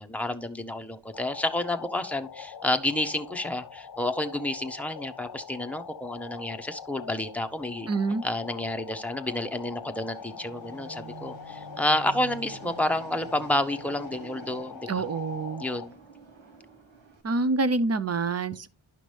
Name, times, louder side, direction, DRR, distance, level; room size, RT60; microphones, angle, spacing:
voice 1, 0.0-7.9 8.2-15.0 15.6-16.0, left 1 dB, 5° left, 0.8 m, -30 dB
sound 1, 1.1-15.9, left 7 dB, 45° left, 0.7 m, -43 dB
Fixed-wing aircraft airplane, 7.0-17.2, right 5 dB, 70° right, 1.5 m, -49 dB
voice 2, 7.9-8.2 14.9-15.6 17.2-18.7, right 3 dB, 30° right, 0.6 m, -26 dB
10.5 x 5.9 x 3.3 m
wide cardioid pair, 70°, 48 cm